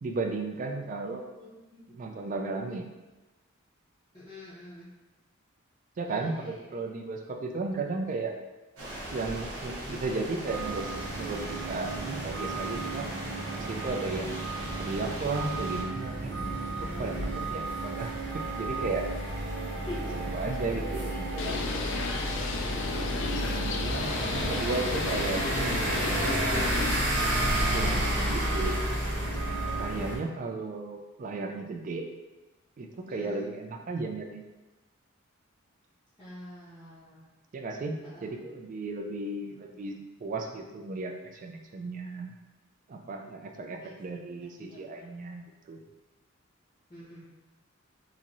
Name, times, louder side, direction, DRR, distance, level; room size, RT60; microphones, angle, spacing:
voice 1, 0.0-1.2 1.9-2.8 6.0-8.3 9.1-10.8 11.1-11.4 11.7-13.1 13.6-14.4 14.8-16.1 16.8-18.1 18.5-19.1 20.3-21.3 23.4-27.0 27.7-28.8 29.8-32.1 32.8-34.4 37.5-37.9 38.2-41.1 41.4-42.3 42.9-45.4 45.7-45.8, right 3 dB, 40° right, 3 dB, 0.3 m, -35 dB
voice 2, 1.4-1.8 4.1-4.9 6.0-6.8 16.3-17.4 19.6-20.3 20.6-22.3 23.4-24.2 33.1-33.5 36.2-37.3 38.1-38.3 43.8-45.2 46.9-47.3, left 1 dB, 20° left, -9 dB, 0.7 m, -46 dB
sound 1, 8.8-15.8, right 1 dB, 85° right, 0.8 m, -40 dB
sound 2, 10.5-30.2, right 1 dB, 60° right, 0.8 m, -31 dB
Bird, 21.4-26.9, left 3 dB, 65° left, 0.3 m, -33 dB
2.9 x 2.6 x 2.5 m, 1.1 s
head